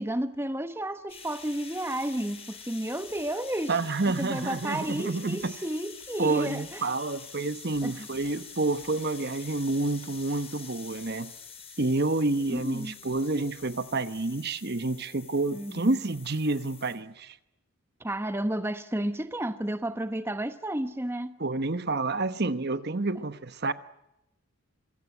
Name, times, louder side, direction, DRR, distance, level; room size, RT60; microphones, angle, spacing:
voice 1, 0.0-3.7 4.1-6.9 7.8-8.1 12.5-13.0 15.5-16.0 18.0-21.4, right 1 dB, 10° right, 1.0 m, -32 dB
sound 1, 1.1-17.0, left 6 dB, 25° left, 7.6 m, -46 dB
voice 2, 3.7-5.5 6.2-11.3 11.8-17.4 21.4-23.7, right 2 dB, 45° right, 1.0 m, -29 dB
26.5 x 17.0 x 9.1 m
head